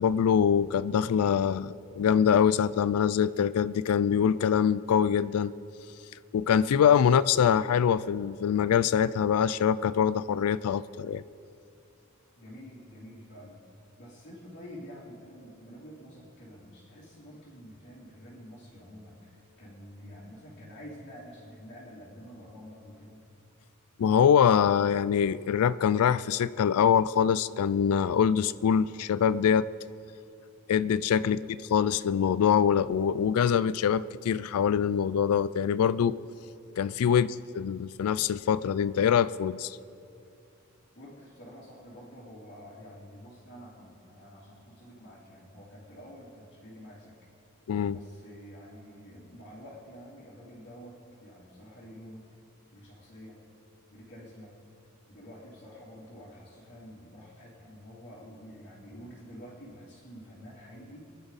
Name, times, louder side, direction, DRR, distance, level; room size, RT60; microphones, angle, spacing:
voice 1, 0.0-5.5 6.3-11.2 24.0-29.7 30.7-31.4 31.7-36.2 36.8-37.3 37.6-39.8 47.7-48.0, left 8 dB, 85° left, 17 dB, 0.3 m, -24 dB
voice 2, 12.4-23.2 31.2-31.6 37.1-37.5 40.9-47.2 47.9-52.2 52.7-53.4 53.9-54.5 55.1-61.1, equal, 50° left, -8 dB, 2.9 m, -48 dB
23.0 x 11.5 x 4.1 m, 2.6 s
head